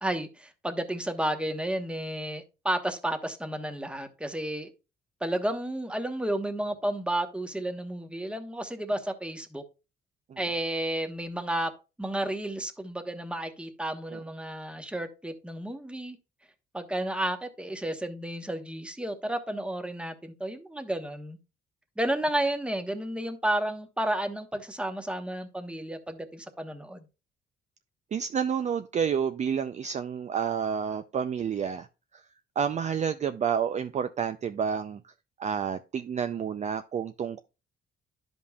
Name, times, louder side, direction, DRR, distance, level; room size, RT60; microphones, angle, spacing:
voice 1, 0.0-4.7 5.2-9.6 10.4-11.7 12.0-16.2 16.7-21.4 22.0-27.0, right 1 dB, 5° right, 1.0 m, -32 dB
voice 2, 28.1-31.9 32.6-35.0 35.4-37.4, right 7 dB, 35° right, 0.4 m, -29 dB
11.0 x 5.3 x 2.3 m
cardioid pair, 90°, 20 cm